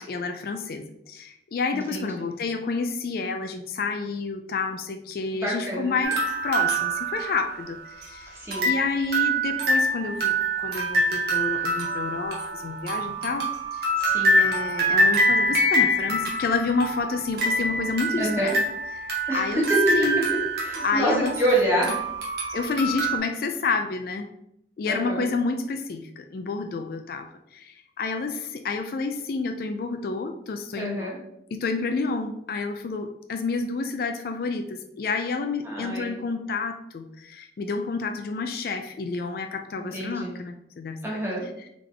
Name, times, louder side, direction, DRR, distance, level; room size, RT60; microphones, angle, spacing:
voice 1, 0.0-6.2 6.4-8.4 8.6-13.9 14.4-18.5 19.0-19.7 19.9-20.3 20.8-21.3 22.5-24.3 24.8-31.1 31.5-41.0, left 4 dB, 50° left, 6 dB, 0.3 m, -29 dB
voice 2, 1.7-2.1 5.3-5.9 8.3-8.7 11.6-11.8 13.9-14.4 18.2-18.6 19.3-19.8 20.6-22.0 24.9-25.3 30.7-31.2 35.6-36.2 39.8-40.3 41.0-41.4, right 1 dB, 15° right, -5 dB, 1.2 m, -27 dB
sound 1, 6.0-8.0 8.5-23.2, right 1 dB, 60° right, 1.0 m, -25 dB
3.7 x 3.5 x 3.3 m, 0.80 s
head